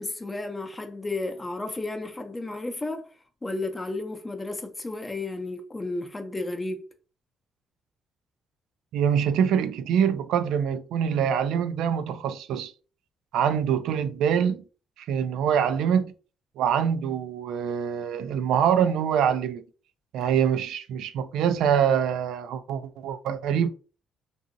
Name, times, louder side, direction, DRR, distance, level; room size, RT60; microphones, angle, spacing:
voice 1, 0.0-3.1 3.4-6.9, left 2 dB, 20° left, 0.6 m, -33 dB
voice 2, 8.9-12.7 13.3-14.6 15.1-16.1 16.6-19.6 20.1-23.7, right 8 dB, 85° right, 0.3 m, -24 dB
2.7 x 2.6 x 2.5 m
cardioid pair, 90°, 0 cm